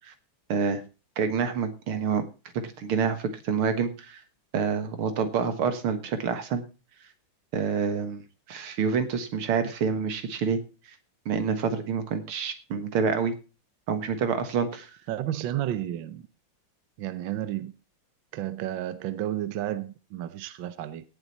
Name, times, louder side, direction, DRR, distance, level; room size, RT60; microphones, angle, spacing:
voice 1, 0.5-0.8 1.2-2.2 2.8-4.2 4.5-6.6 7.5-8.2 8.5-10.6 11.3-13.3 13.9-14.9, right 6 dB, 90° right, 9 dB, 2.4 m, -27 dB
voice 2, 15.1-16.2 17.0-17.7 18.3-21.0, right 12 dB, 70° right, 13 dB, 1.5 m, -32 dB
17.5 x 7.5 x 4.2 m, 0.32 s
omnidirectional pair, 2.3 m